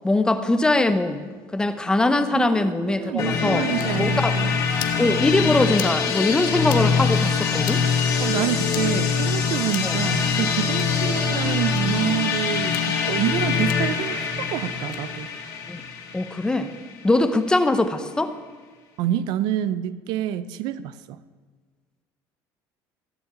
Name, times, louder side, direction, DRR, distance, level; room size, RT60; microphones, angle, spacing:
voice 1, 0.0-1.2 1.5-3.6 4.0-4.3 5.0-7.8 9.8-10.0 15.7-15.8 16.1-16.7 17.0-18.3, left 2 dB, 10° left, 10 dB, 0.8 m, -22 dB
voice 2, 2.3-4.5 8.2-15.3 19.0-21.2, right 11 dB, 70° right, 15 dB, 0.6 m, -27 dB
sound 1, 3.2-16.9, left 5 dB, 50° left, 2.4 m, -24 dB
sound 2, 3.8-3.9 4.7-5.0 5.7-6.0 6.6-6.8 7.6-7.8 8.7-8.9 9.7-10.0 10.7-10.9 11.7-11.8 12.6-12.9 13.7-13.8 14.8-15.0, left 13 dB, 70° left, 1.0 m, -36 dB
15.5 x 7.0 x 8.8 m, 1.5 s
cardioid pair, 150°, 8 cm